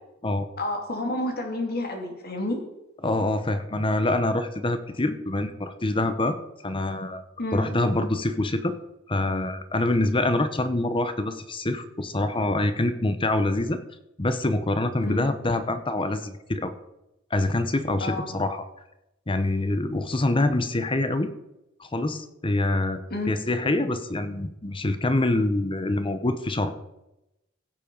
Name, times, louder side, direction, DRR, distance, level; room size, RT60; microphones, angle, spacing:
voice 1, 0.6-2.6 7.4-7.7 15.0-15.2 18.0-18.3 23.1-23.4, left 1 dB, 50° left, 3 dB, 2.7 m, -30 dB
voice 2, 3.0-6.4 6.6-7.2 7.5-8.7 9.1-13.8 14.2-16.7 17.3-18.6 19.3-21.3 21.8-23.0 23.3-26.7, left 2 dB, 25° left, 10 dB, 0.8 m, -25 dB
16.5 x 7.5 x 5.3 m, 0.90 s
head